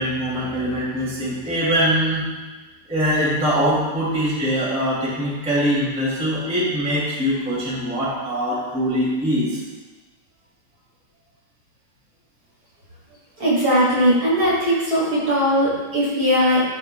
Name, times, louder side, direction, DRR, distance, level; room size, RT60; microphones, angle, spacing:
voice 1, 0.0-2.2 2.9-9.5, equal, 5° right, -8 dB, 1.9 m, -22 dB
voice 2, 13.4-16.6, equal, 45° right, -8 dB, 2.8 m, -19 dB
13.5 x 4.9 x 2.2 m, 1.2 s
omnidirectional pair, 3.4 m